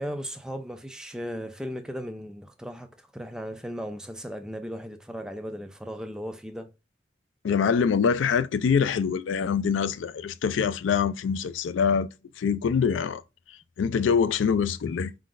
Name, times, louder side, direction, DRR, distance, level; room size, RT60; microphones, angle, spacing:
voice 1, 0.0-6.7, equal, 5° right, 0.4 m, -36 dB
voice 2, 7.4-12.1 12.4-13.2 13.8-15.1, left 6 dB, 90° left, 0.3 m, -24 dB
4.4 x 3.7 x 2.5 m
head